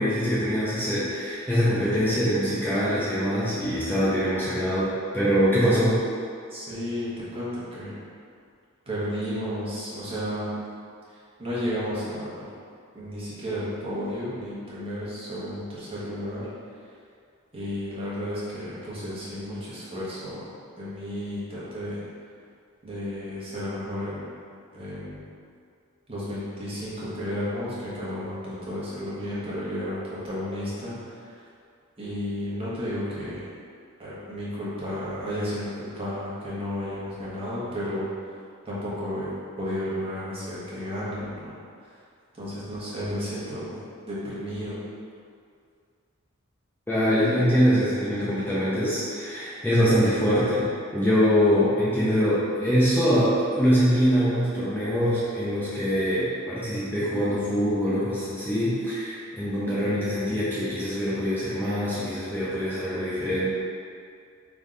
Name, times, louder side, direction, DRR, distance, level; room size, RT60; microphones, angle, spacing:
voice 1, 0.0-6.0 46.9-50.7 50.9-63.5, equal, 10° left, -10 dB, 0.6 m, -23 dB
voice 2, 6.5-8.0 8.9-10.6 11.1-12.5 12.9-16.5 17.5-20.5 20.8-22.0 22.8-24.3 24.7-25.2 26.1-31.4 32.0-33.5 34.0-38.1 38.6-39.3 39.6-41.5 42.3-43.8 44.1-44.8, equal, 30° right, -9 dB, 1.2 m, -32 dB
3.5 x 3.0 x 3.8 m, 2.2 s
head